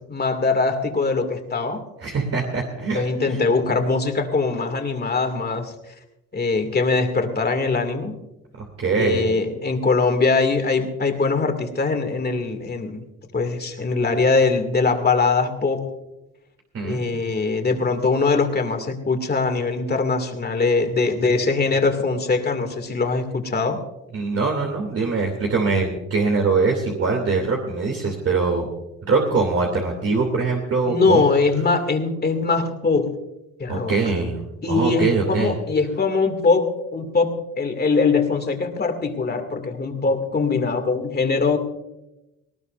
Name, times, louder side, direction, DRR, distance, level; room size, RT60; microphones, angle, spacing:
voice 1, 0.0-1.8 2.9-5.7 6.3-8.2 8.9-13.0 13.3-15.8 16.8-23.8 30.9-33.1 33.6-34.0 34.6-41.6, left 4 dB, 30° left, 5 dB, 2.5 m, -22 dB
voice 2, 2.0-3.4 8.5-9.3 16.7-17.0 24.1-28.7 29.1-31.2 33.7-35.5, right 4 dB, 50° right, 0 dB, 2.9 m, -23 dB
19.0 x 18.5 x 2.6 m, 0.93 s
cardioid pair, 90°, 30 cm